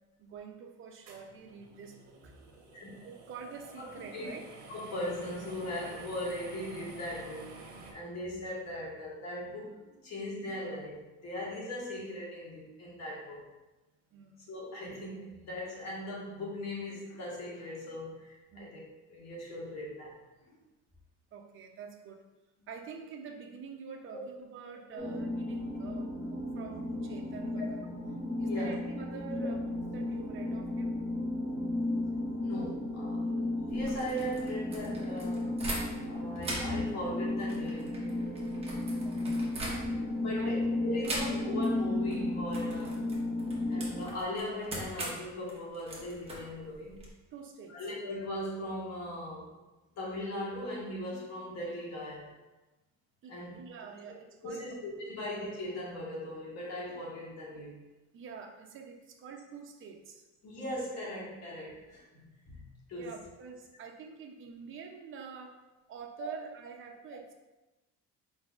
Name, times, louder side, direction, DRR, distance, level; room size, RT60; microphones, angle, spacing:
voice 1, 0.2-2.4 3.0-4.4 14.1-14.4 18.5-18.8 21.3-22.2 22.7-27.8 28.4-31.0 39.0-39.4 39.9-40.0 40.4-40.7 47.3-47.8 53.2-54.8 58.1-60.2 62.9-65.6 65.9-67.3, right 6 dB, 40° right, 3 dB, 0.6 m, -46 dB
sound 1, 1.1-7.9, right 3 dB, 70° right, 1.0 m, -50 dB
voice 2, 4.7-7.5 7.9-13.4 14.5-18.8 19.1-20.1 20.5-20.6 24.9-25.0 27.6-27.7 28.1-28.7 32.0-32.1 32.4-33.3 33.6-35.6 36.1-38.0 39.0-39.4 40.1-43.0 43.7-47.0 47.7-49.5 50.0-52.3 53.3-53.5 54.0-54.1 54.4-57.7 60.4-62.6 62.9-63.1 66.2-66.3, left 1 dB, 60° left, -4 dB, 1.4 m, -39 dB
sound 2, 25.0-44.0, left 2 dB, 5° left, 1.3 m, -34 dB
sound 3, 33.7-36.1 36.4-40.2 41.0-41.7 42.0-42.2 42.5-47.1, right 1 dB, 20° right, 0.9 m, -41 dB
4.9 x 4.0 x 2.4 m, 1.1 s
cardioid pair, 160°, 31 cm